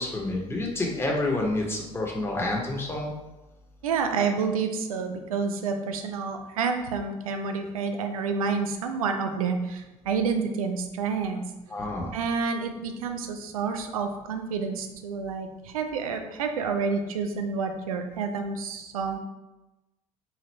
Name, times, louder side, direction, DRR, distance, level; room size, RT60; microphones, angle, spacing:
voice 1, 0.0-3.1 11.7-12.1, left 2 dB, 15° left, -2 dB, 0.9 m, -28 dB
voice 2, 3.8-11.4 12.1-19.2, right 5 dB, 75° right, 6 dB, 0.4 m, -29 dB
3.2 x 2.4 x 4.1 m, 1.0 s
figure-of-eight pair, 60°, 18 cm